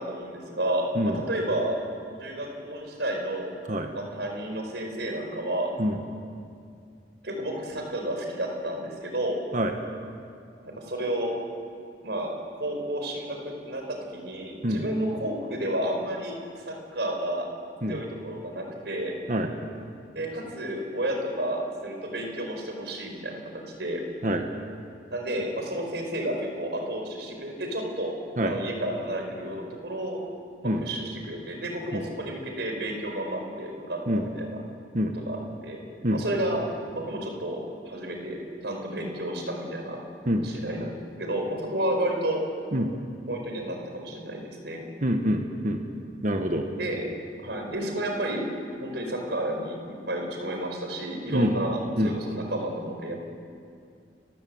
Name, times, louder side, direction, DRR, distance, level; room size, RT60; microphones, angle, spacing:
voice 1, 0.0-0.9 1.3-1.8 2.2-3.5 3.9-5.7 7.2-9.4 10.6-11.3 12.0-16.4 16.6-17.5 17.9-19.1 20.1-23.4 23.8-24.0 25.1-28.2 28.4-30.2 30.6-34.6 35.1-35.4 35.6-35.8 36.1-36.6 36.9-37.6 37.8-38.4 38.6-40.0 40.4-42.4 43.3-44.9 46.8-47.0 47.4-48.4 48.8-49.8 50.1-53.2, right 1 dB, 70° right, 2 dB, 4.9 m, -31 dB
voice 2, 45.0-45.8 46.2-46.6 51.3-51.6 52.0-52.2, equal, 45° right, 4 dB, 1.5 m, -25 dB
30.0 x 16.0 x 7.9 m, 2.4 s
head